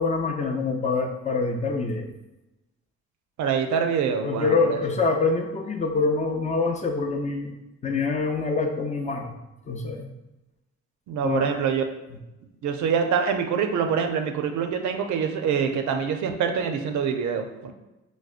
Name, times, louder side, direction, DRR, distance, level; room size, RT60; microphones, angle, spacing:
voice 1, 0.0-2.1 4.2-7.5 7.8-9.4 9.7-10.1 11.2-11.5 12.1-12.2, left 4 dB, 25° left, 3 dB, 0.5 m, -25 dB
voice 2, 3.4-4.8 11.1-11.8 12.6-17.7, right 6 dB, 70° right, 5 dB, 0.5 m, -25 dB
4.7 x 2.1 x 2.4 m, 0.99 s
cardioid pair, 90°, 30 cm